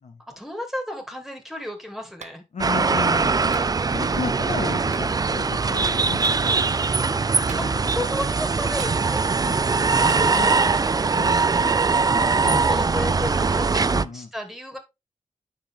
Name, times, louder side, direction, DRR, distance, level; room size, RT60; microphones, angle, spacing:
voice 1, 0.3-2.4 7.6-9.4 10.0-10.7 12.4-13.9 14.1-14.8, left 1 dB, ahead, 4 dB, 2.4 m, -33 dB
Clapping, 2.2-2.4 3.5-3.7 4.9-5.1 6.2-6.4 7.5-7.9 8.8-9.4 10.1-10.3, right 5 dB, 75° right, 1.1 m, -42 dB
voice 2, 2.5-3.5 3.9-6.6 7.5-8.0 9.4-9.6 10.3-10.5 11.1-11.4 12.4-12.7 13.9-14.3, left 5 dB, 75° left, 3 dB, 2.0 m, -34 dB
sound 1, 2.6-14.0, right 4 dB, 30° right, 0.4 m, -21 dB
9.9 x 5.8 x 3.5 m, 0.23 s
wide cardioid pair, 115°, 12 cm